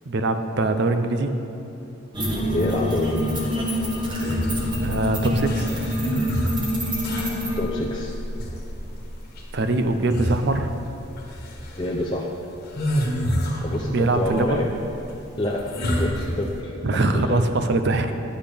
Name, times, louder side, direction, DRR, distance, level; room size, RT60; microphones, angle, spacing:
voice 1, 0.1-1.3 4.8-5.7 9.5-10.7 13.9-14.6 16.8-18.1, right 2 dB, 50° right, 8 dB, 0.5 m, -22 dB
sound 1, 2.1-7.6, equal, 20° right, 1.0 m, -26 dB
voice 2, 2.5-3.5 7.6-8.1 11.8-12.3 13.6-14.7 15.4-17.4, left 1 dB, 20° left, -3 dB, 0.5 m, -27 dB
sound 2, 3.2-16.6, equal, 45° left, 1.3 m, -29 dB
10.0 x 8.0 x 3.4 m, 3.0 s
head